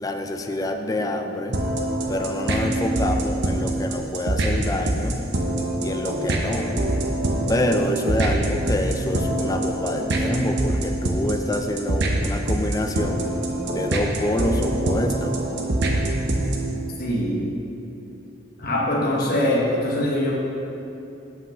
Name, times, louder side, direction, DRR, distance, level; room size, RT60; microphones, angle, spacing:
voice 1, 0.0-1.6 2.1-5.3 5.8-6.7 7.5-13.2 13.7-15.3, left 1 dB, 20° left, 5 dB, 0.3 m, -26 dB
sound 1, 1.5-16.8, right 1 dB, 55° right, 0.8 m, -24 dB
voice 2, 17.0-17.5 18.6-20.4, left 1 dB, 50° left, -4 dB, 1.1 m, -23 dB
5.7 x 5.4 x 6.5 m, 2.9 s
head